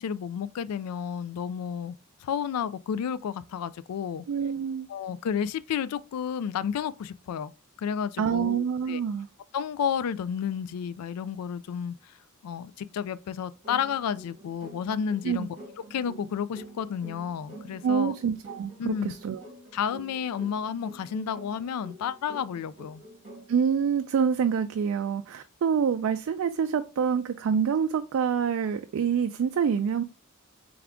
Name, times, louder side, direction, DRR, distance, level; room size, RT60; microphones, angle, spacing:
voice 1, 0.0-1.9 2.2-4.2 4.9-7.5 7.8-9.0 9.5-12.1 12.4-15.6 15.9-18.1 18.8-19.1 19.7-23.0, left 7 dB, 85° left, 0.3 m, -31 dB
voice 2, 4.3-4.9 8.2-9.3 15.2-15.5 17.8-19.4 23.5-30.0, right 7 dB, 60° right, 0.3 m, -26 dB
sound 1, 13.6-23.6, right 2 dB, 35° right, 1.4 m, -47 dB
3.6 x 3.5 x 3.5 m
head